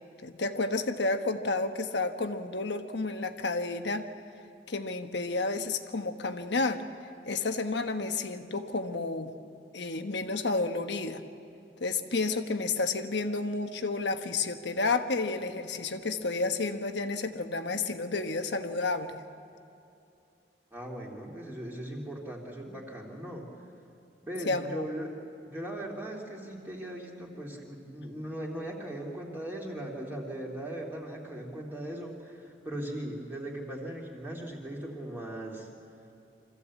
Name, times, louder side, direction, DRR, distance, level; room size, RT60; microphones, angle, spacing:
voice 1, 0.2-4.1 4.7-6.8 7.3-9.3 9.7-11.2 11.8-19.2 24.4-24.9, left 3 dB, 70° left, 7 dB, 1.2 m, -31 dB
voice 2, 20.7-23.5 24.2-25.1 25.5-35.7, right 1 dB, 10° right, -2 dB, 2.8 m, -39 dB
25.0 x 15.0 x 8.4 m, 2.7 s
head